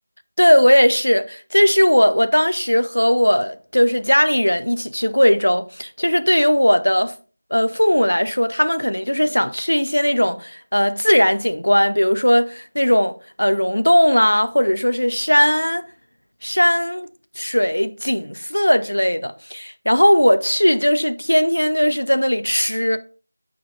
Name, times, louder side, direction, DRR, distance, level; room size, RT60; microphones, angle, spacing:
voice 1, 0.4-7.1 7.5-15.8 16.4-17.1 17.4-23.0, equal, 75° left, 0.8 m, -18 dB
6.1 x 6.0 x 3.9 m
figure-of-eight pair, 170°, 0 cm